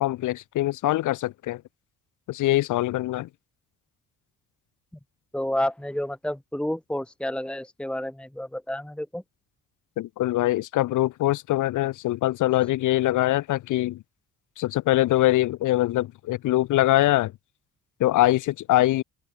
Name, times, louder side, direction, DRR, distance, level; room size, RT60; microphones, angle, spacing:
voice 1, 0.0-1.6 2.3-3.3 10.0-14.0 14.6-17.3 18.0-19.0, left 16 dB, 85° left, 1.6 m, -23 dB
voice 2, 5.3-9.2, left 1 dB, 5° left, 1.9 m, -30 dB
cardioid pair, 90°, 30 cm